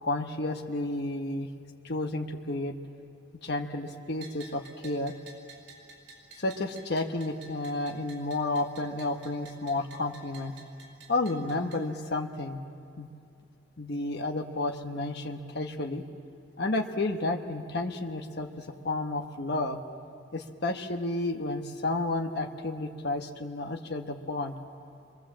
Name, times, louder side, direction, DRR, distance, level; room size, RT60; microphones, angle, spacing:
voice 1, 0.0-1.5 1.8-2.8 3.4-5.1 6.4-10.5 11.1-12.6 13.0-13.1 13.8-16.0 16.6-19.8 20.3-24.6, left 2 dB, 60° left, 3 dB, 1.3 m, -31 dB
Bell, 4.2-11.8, right 3 dB, 80° right, 5.0 m, -52 dB
28.0 x 23.0 x 7.6 m, 2.5 s
head